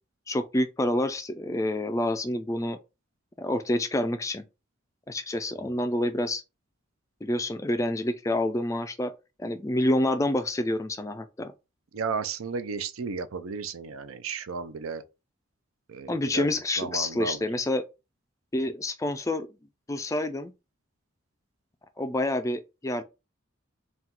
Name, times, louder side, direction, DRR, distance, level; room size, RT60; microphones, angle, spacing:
voice 1, 0.3-2.8 3.4-4.5 5.1-6.4 7.2-9.1 9.4-11.5 16.1-17.8 18.5-19.5 19.9-20.5 22.0-23.0, left 1 dB, 15° left, 0.3 m, -28 dB
voice 2, 11.9-15.0 15.9-17.5, right 5 dB, 85° right, 0.5 m, -34 dB
4.3 x 2.3 x 3.7 m
head